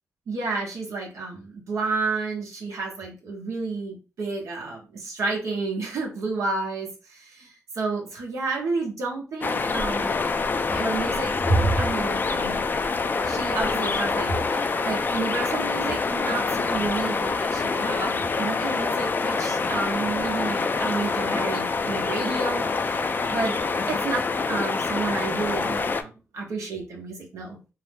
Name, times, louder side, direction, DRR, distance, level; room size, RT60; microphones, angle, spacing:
voice 1, 0.3-10.1 10.7-12.8 13.2-23.0 23.3-23.5 23.9-27.6, right 3 dB, 80° right, -1 dB, 0.9 m, -30 dB
sound 1, 9.4-26.0, left 4 dB, 40° left, 0.3 m, -26 dB
2.6 x 2.0 x 3.3 m, 0.31 s
cardioid pair, 70°, 5 cm